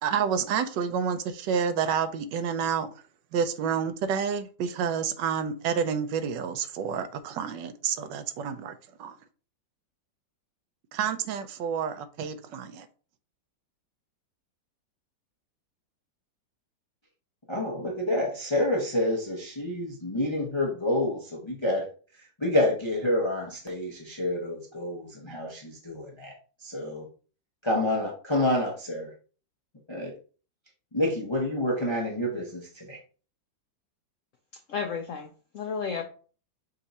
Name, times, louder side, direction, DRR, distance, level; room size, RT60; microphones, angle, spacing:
voice 1, 0.0-2.9 3.3-9.2 10.9-12.9, right 7 dB, 80° right, 10 dB, 1.2 m, -29 dB
voice 2, 17.5-21.9 22.4-26.4 26.6-27.1 27.6-29.1 29.9-30.1 30.9-33.0, left 1 dB, 35° left, -2 dB, 0.4 m, -28 dB
voice 3, 34.7-36.0, left 6 dB, 75° left, 4 dB, 0.7 m, -32 dB
5.3 x 2.5 x 4.0 m, 0.38 s
omnidirectional pair, 2.0 m